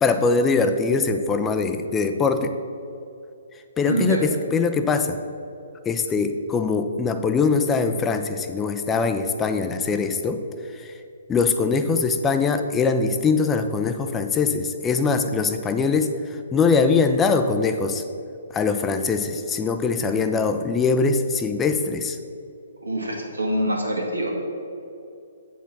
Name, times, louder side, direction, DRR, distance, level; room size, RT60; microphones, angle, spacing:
voice 1, 0.0-2.5 3.8-5.2 5.9-10.4 11.3-16.1 16.5-18.0 18.5-22.2, left 4 dB, 15° left, 7 dB, 0.5 m, -22 dB
voice 2, 3.8-4.2 22.8-24.3, right 1 dB, 85° right, -1 dB, 1.7 m, -25 dB
8.0 x 4.5 x 6.0 m, 2.6 s
figure-of-eight pair, 130°, 0 cm